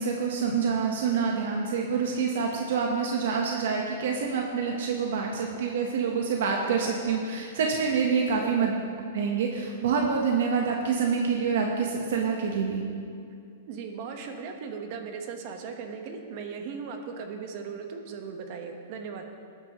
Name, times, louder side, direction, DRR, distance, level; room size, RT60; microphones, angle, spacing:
voice 1, 0.0-8.7 9.1-12.8, right 5 dB, 70° right, 0 dB, 1.3 m, -27 dB
voice 2, 8.3-8.7 13.7-19.2, right 5 dB, 45° right, 4 dB, 1.4 m, -38 dB
20.0 x 9.7 x 3.2 m, 2.4 s
hypercardioid pair, 150°, 0 cm